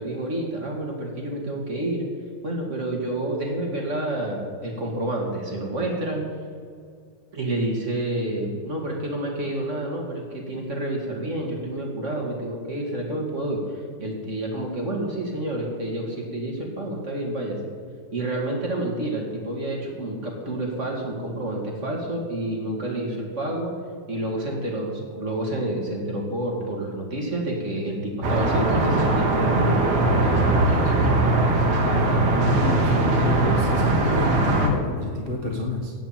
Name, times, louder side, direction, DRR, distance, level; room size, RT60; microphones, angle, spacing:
voice 1, 0.0-2.1 2.4-6.2 7.3-17.6 18.1-23.7 24.1-30.9, right 1 dB, 25° right, 0 dB, 1.8 m, -29 dB
sound 1, 28.2-34.7, right 2 dB, 55° right, 2.2 m, -20 dB
voice 2, 32.3-35.9, left 2 dB, 55° left, -1 dB, 0.6 m, -29 dB
16.5 x 6.0 x 8.8 m, 2.2 s
omnidirectional pair, 3.8 m